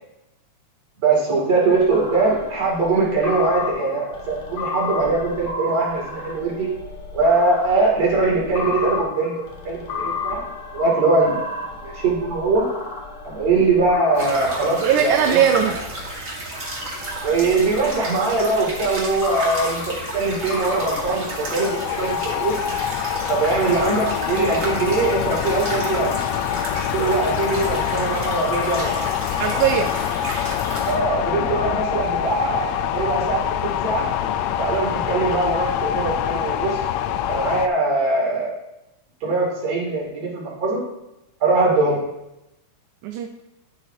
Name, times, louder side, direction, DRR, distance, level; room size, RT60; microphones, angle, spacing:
voice 1, 1.0-6.7 7.1-9.3 9.7-10.4 10.7-11.4 11.8-12.7 13.2-15.4 17.2-21.7 22.0-22.5 23.3-26.1 26.9-29.0 30.9-34.1 34.6-36.8 37.3-38.5 39.2-40.8 41.4-42.0, right 3 dB, 55° right, -4 dB, 3.8 m, -21 dB
sound 1, 1.7-16.1 16.6-21.7, left 3 dB, 55° left, 2.5 m, -33 dB
sound 2, 14.1-30.9, right 2 dB, 30° right, 1.7 m, -32 dB
voice 2, 14.8-15.8 29.4-30.0 43.0-43.3, right 9 dB, 80° right, 5 dB, 2.1 m, -19 dB
sound 3, 20.3-37.7, left 10 dB, 80° left, 1.5 m, -25 dB
12.5 x 7.2 x 2.8 m, 0.91 s
omnidirectional pair, 3.5 m